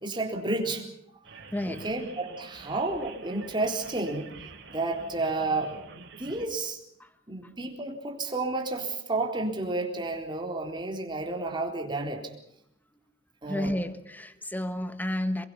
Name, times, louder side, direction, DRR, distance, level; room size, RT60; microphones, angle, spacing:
voice 1, 0.0-0.9 1.7-4.3 4.7-6.8 7.3-12.3 13.4-13.7, right 2 dB, 25° right, 1 dB, 4.0 m, -31 dB
sound 1, 1.2-6.5, right 4 dB, 65° right, 4.8 m, -47 dB
voice 2, 1.5-1.9 7.0-7.1 7.4-7.5 13.5-15.5, left 1 dB, 10° left, 10 dB, 1.5 m, -31 dB
28.0 x 22.5 x 5.6 m, 0.74 s
head